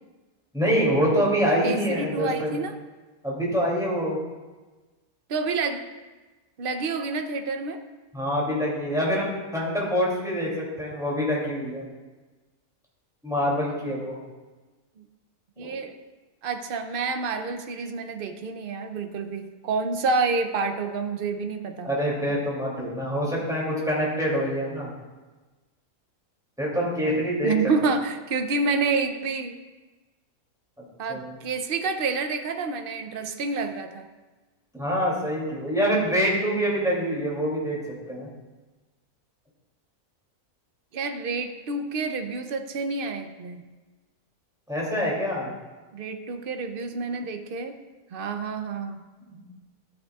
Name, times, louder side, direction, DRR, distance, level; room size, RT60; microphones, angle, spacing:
voice 1, 0.5-2.6 3.2-4.2 8.1-11.9 13.2-14.2 15.6-15.7 21.8-24.9 26.6-27.5 31.1-31.4 34.7-37.8 38.1-38.3 44.7-45.5 49.3-49.4, equal, ahead, -5 dB, 2.6 m, -25 dB
voice 2, 1.6-2.8 5.3-5.8 6.6-7.8 15.0-15.1 15.6-16.0 16.4-21.9 27.4-29.6 31.0-34.1 40.9-43.6 45.9-47.8 48.1-49.0, right 4 dB, 55° right, 7 dB, 0.6 m, -28 dB
13.0 x 9.4 x 2.4 m, 1.2 s
omnidirectional pair, 1.6 m